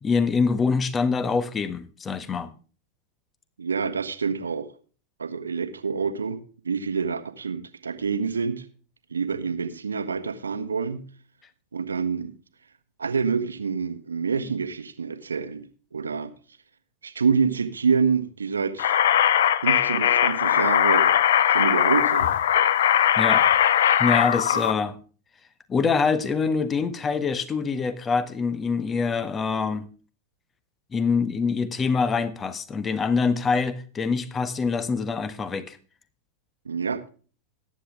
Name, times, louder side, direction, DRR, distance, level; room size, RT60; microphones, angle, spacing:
voice 1, 0.0-2.5 23.1-23.4 24.0-25.0 25.7-29.8 30.9-35.8, left 5 dB, 20° left, 13 dB, 1.4 m, -25 dB
voice 2, 3.6-4.7 5.2-8.7 9.1-11.1 11.7-12.3 13.0-16.3 17.0-19.0 19.6-21.1 21.5-22.3 24.5-24.6 36.6-37.0, right 5 dB, 75° right, 11 dB, 1.4 m, -27 dB
sound 1, 18.8-24.7, left 10 dB, 60° left, 0.8 m, -20 dB
14.5 x 10.0 x 3.4 m, 0.38 s
figure-of-eight pair, 90°, 0 cm